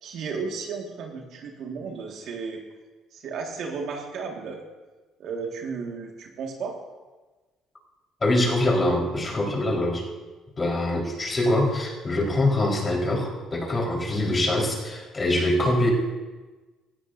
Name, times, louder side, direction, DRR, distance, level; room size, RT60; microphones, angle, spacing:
voice 1, 0.0-2.6 3.1-4.6 5.2-6.8, right 5 dB, 65° right, 1 dB, 1.8 m, -34 dB
voice 2, 8.2-10.0 10.6-15.9, left 1 dB, 30° left, -2 dB, 4.3 m, -24 dB
17.0 x 12.5 x 2.7 m, 1.2 s
supercardioid pair, 70°, 0 cm